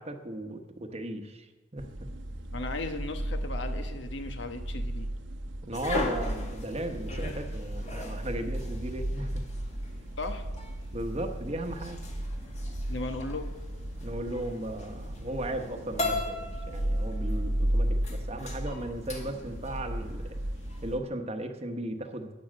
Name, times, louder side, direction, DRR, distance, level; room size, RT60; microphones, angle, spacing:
voice 1, 0.0-1.9 5.7-9.4 10.9-12.0 14.0-20.4 20.8-22.3, right 1 dB, 35° right, 6 dB, 1.0 m, -36 dB
sound 1, 1.8-21.0, right 1 dB, 80° right, 1.1 m, -34 dB
voice 2, 2.5-5.1 10.2-10.4 12.9-13.5, left 2 dB, 70° left, 7 dB, 1.3 m, -36 dB
sound 2, 5.7-21.0, left 2 dB, 35° left, 2.0 m, -40 dB
11.5 x 8.6 x 7.5 m, 1.2 s
head